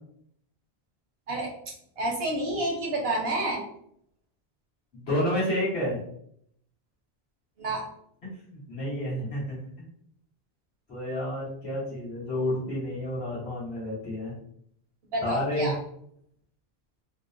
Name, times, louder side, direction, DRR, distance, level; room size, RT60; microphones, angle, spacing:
voice 1, 2.0-3.6 7.6-7.8 15.1-15.8, right 1 dB, 75° right, -1 dB, 1.1 m, -29 dB
voice 2, 4.9-6.0 8.7-9.6 10.9-14.3 15.2-15.7, left 1 dB, 85° left, -9 dB, 1.7 m, -30 dB
3.7 x 2.1 x 2.5 m, 0.68 s
omnidirectional pair, 1.1 m